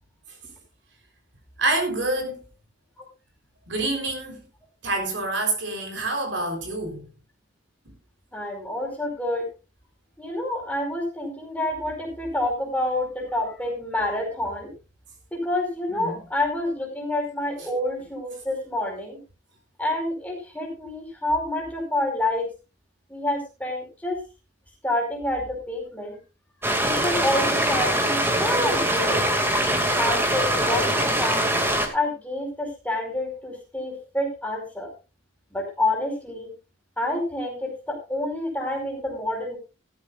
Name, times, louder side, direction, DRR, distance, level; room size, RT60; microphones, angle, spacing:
voice 1, 1.6-2.4 3.7-4.4 4.8-7.1 15.9-16.2 17.6-17.7, right 2 dB, 60° right, 3.9 m, -27 dB
voice 2, 8.3-9.5 10.2-14.7 15.3-19.2 19.8-22.5 23.1-24.2 24.8-26.2 26.8-29.2 30.0-31.5 31.9-34.9 35.5-36.5 37.0-39.6, left 1 dB, 10° left, 4.9 m, -28 dB
sound 1, 26.6-31.9, right 1 dB, 10° right, 2.3 m, -23 dB
16.5 x 13.0 x 2.5 m
head